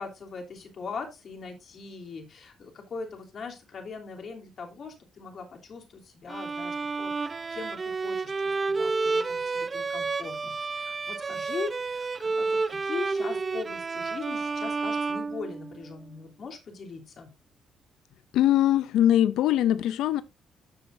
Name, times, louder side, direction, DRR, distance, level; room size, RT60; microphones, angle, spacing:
voice 1, 0.0-17.3, left 4 dB, 55° left, 3.1 m, -40 dB
Bowed string instrument, 6.3-16.0, right 4 dB, 35° right, 0.6 m, -30 dB
voice 2, 18.3-20.2, left 12 dB, 85° left, 0.5 m, -22 dB
13.0 x 7.0 x 2.6 m
cardioid pair, 90°, 0 cm